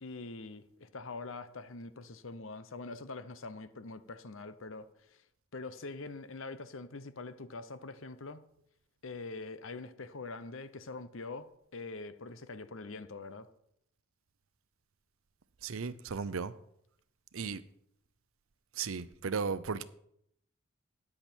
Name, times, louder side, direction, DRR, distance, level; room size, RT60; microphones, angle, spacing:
voice 1, 0.0-4.9 5.5-8.4 9.0-13.5, left 3 dB, 65° left, 0.8 m, -44 dB
voice 2, 15.6-16.5 17.3-17.6 18.7-19.8, right 5 dB, 75° right, 0.7 m, -35 dB
13.5 x 9.7 x 4.5 m
head